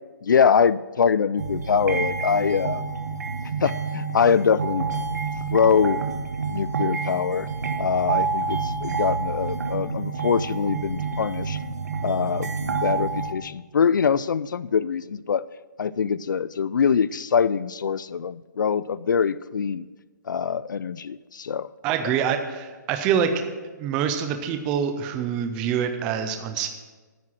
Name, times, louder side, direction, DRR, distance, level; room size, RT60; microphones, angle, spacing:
voice 1, 0.2-2.8 3.6-4.9 5.5-6.0 6.5-7.5 7.8-11.6 12.0-15.4 15.8-19.9 20.3-21.7, left 6 dB, 80° left, 18 dB, 0.4 m, -23 dB
sound 1, 1.4-13.3, right 4 dB, 60° right, 1.2 m, -28 dB
voice 2, 21.8-23.3 23.8-26.7, right 8 dB, 5° right, 7 dB, 0.3 m, -25 dB
9.7 x 9.5 x 7.4 m, 1.3 s
hypercardioid pair, 175°, 10 cm